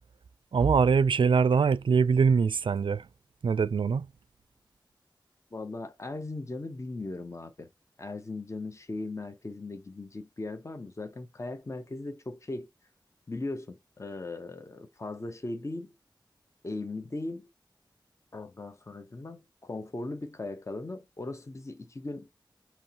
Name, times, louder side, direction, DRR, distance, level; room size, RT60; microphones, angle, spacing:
voice 1, 0.5-3.0 3.4-4.1, right 5 dB, 85° right, 0.4 m, -23 dB
voice 2, 5.5-7.7 8.0-12.7 13.3-15.9 16.6-17.5 18.3-22.3, left 2 dB, 35° left, 0.9 m, -38 dB
5.4 x 2.9 x 2.9 m
wide cardioid pair, 85°, 8 cm